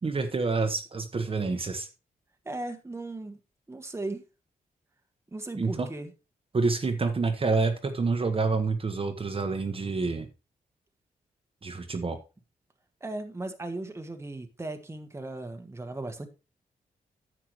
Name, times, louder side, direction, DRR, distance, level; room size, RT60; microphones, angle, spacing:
voice 1, 0.0-1.9 5.6-5.9 6.5-10.3 11.6-12.2, right 4 dB, 35° right, 1.1 m, -28 dB
voice 2, 2.4-3.4 3.7-4.2 5.3-6.1 13.0-16.3, right 2 dB, 15° right, 1.2 m, -37 dB
10.5 x 7.6 x 3.1 m
cardioid pair, 95°, 15 cm